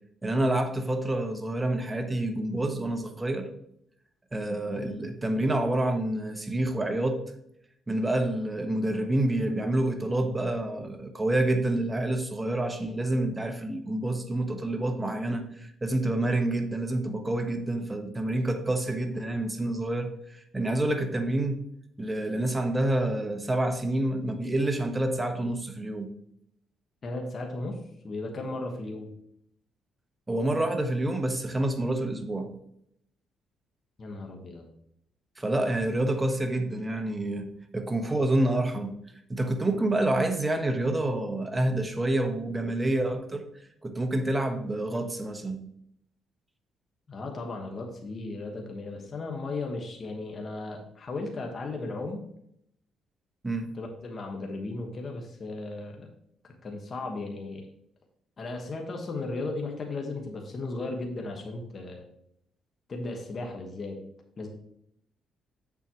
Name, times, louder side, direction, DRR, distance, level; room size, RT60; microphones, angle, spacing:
voice 1, 0.2-3.5 4.3-7.2 7.9-21.6 22.0-26.1 30.3-32.5 35.4-39.0 39.3-43.4 43.8-45.6 53.4-53.7, right 1 dB, 20° right, 5 dB, 1.2 m, -28 dB
voice 2, 27.0-29.1 34.0-34.6 47.1-52.2 53.8-56.1 56.6-57.7 58.4-62.0 62.9-64.0 64.4-64.5, left 2 dB, 45° left, 1 dB, 1.3 m, -36 dB
7.7 x 7.2 x 3.0 m, 0.72 s
cardioid pair, 90°, 0 cm